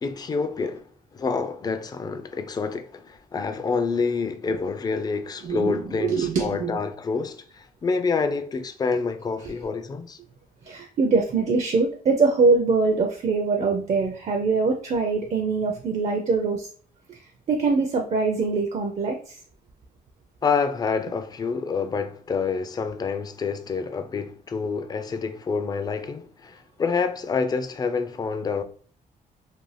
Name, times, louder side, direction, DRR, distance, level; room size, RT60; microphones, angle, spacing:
voice 1, 0.0-10.2 20.4-28.6, left 5 dB, 25° left, 0.3 m, -27 dB
voice 2, 5.4-6.8 10.7-16.7 17.1-17.2 17.5-19.4, right 4 dB, 45° right, 0.4 m, -23 dB
2.6 x 2.1 x 3.2 m
cardioid pair, 100°, 16 cm